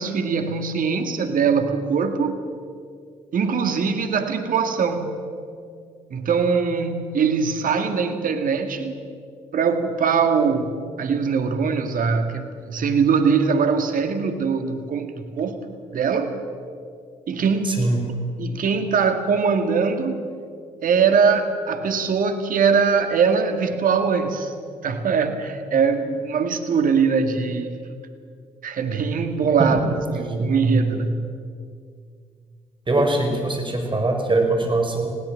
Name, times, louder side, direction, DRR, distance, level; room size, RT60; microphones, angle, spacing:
voice 1, 0.0-2.4 3.3-5.2 6.1-9.0 9.5-15.6 15.9-16.4 17.3-17.9 18.4-20.2 20.8-24.5 24.8-27.8 28.6-29.8 30.1-31.2, right 5 dB, 55° right, 7 dB, 2.0 m, -22 dB
voice 2, 17.6-18.0 29.6-29.7 32.9-35.1, right 2 dB, 30° right, 4 dB, 5.4 m, -21 dB
20.0 x 17.0 x 7.5 m, 2.2 s
hypercardioid pair, 50°, 16 cm